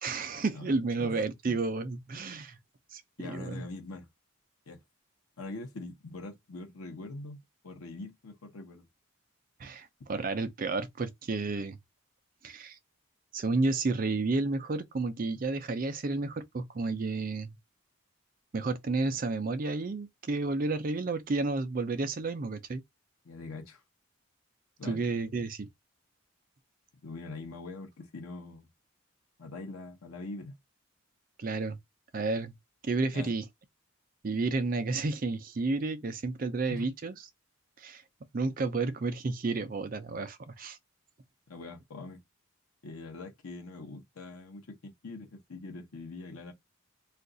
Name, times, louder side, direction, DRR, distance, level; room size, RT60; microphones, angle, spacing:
voice 1, 0.0-2.6 2.9-3.6 9.6-11.8 12.4-12.8 13.3-17.6 18.5-22.8 24.8-25.7 31.4-31.8 32.1-32.6 32.8-33.4 34.2-37.1 37.8-38.0 38.3-40.8, right 3 dB, 40° right, 0.4 m, -31 dB
voice 2, 0.5-1.1 3.2-4.1 4.7-4.8 5.4-7.4 7.6-8.9 23.2-23.8 24.8-25.2 27.0-28.7 29.4-30.5 33.1-33.3 36.7-36.9 41.5-42.2 42.8-46.5, left 3 dB, 85° left, 0.8 m, -43 dB
2.5 x 2.3 x 3.7 m
head